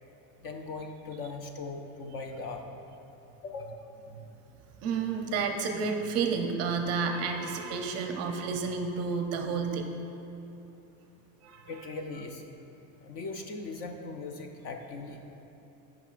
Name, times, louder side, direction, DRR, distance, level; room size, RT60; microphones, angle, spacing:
voice 1, 0.4-2.8 3.4-3.9 11.7-12.4 13.0-15.4, left 3 dB, 40° left, 4 dB, 0.4 m, -39 dB
voice 2, 4.8-9.9 11.4-11.7, right 5 dB, 35° right, 4 dB, 0.6 m, -30 dB
16.5 x 5.9 x 2.4 m, 2.9 s
cardioid pair, 165°, 42 cm